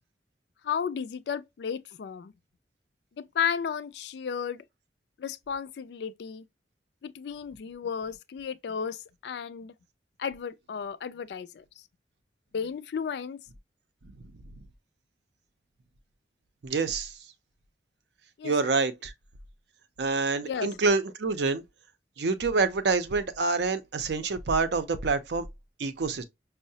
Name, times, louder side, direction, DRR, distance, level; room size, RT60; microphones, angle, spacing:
voice 1, 0.6-2.3 3.2-4.6 5.2-6.4 7.0-9.7 10.2-11.6 12.5-13.4 18.4-18.5 20.4-20.7, left 7 dB, 65° left, 0.3 m, -33 dB
voice 2, 16.6-17.2 18.4-19.1 20.0-21.6 22.2-25.5 25.8-26.2, right 4 dB, 70° right, 0.5 m, -27 dB
5.4 x 2.0 x 2.6 m
head